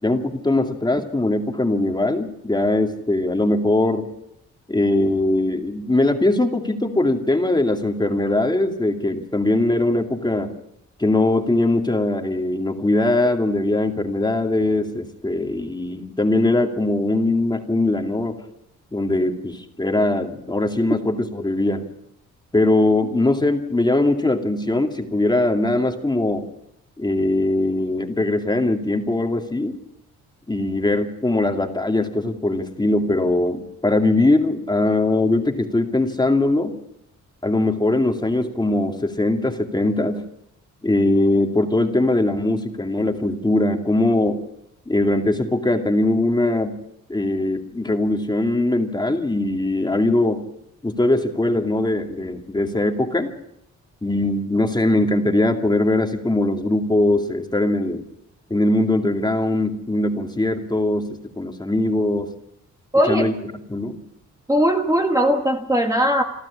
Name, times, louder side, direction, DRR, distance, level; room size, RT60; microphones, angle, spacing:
voice 1, 0.0-4.1 4.7-10.5 11.0-18.4 18.9-21.8 22.5-26.4 27.0-29.8 30.5-36.7 37.4-40.2 40.8-44.4 44.9-46.7 47.1-50.4 50.8-53.3 54.0-58.0 58.5-62.3 63.1-63.3 63.7-64.0, left 2 dB, 15° left, 4 dB, 2.4 m, -21 dB
voice 2, 62.9-63.3 64.5-66.2, equal, 10° right, 3 dB, 1.7 m, -19 dB
28.0 x 12.5 x 8.5 m, 0.83 s
cardioid pair, 110°, 30 cm